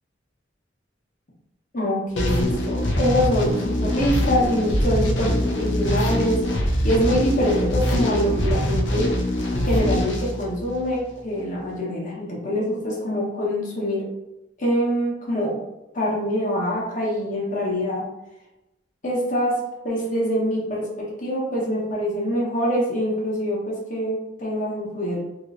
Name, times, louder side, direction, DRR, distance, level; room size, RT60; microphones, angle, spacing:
voice 1, 1.7-6.4 6.8-9.1 9.6-14.1 14.6-15.6 15.9-18.0 19.0-19.5 19.8-25.2, equal, 45° left, -4 dB, 1.0 m, -24 dB
sound 1, 2.1-11.0, left 1 dB, 75° left, 0.6 m, -23 dB
3.1 x 3.0 x 2.5 m, 0.94 s
head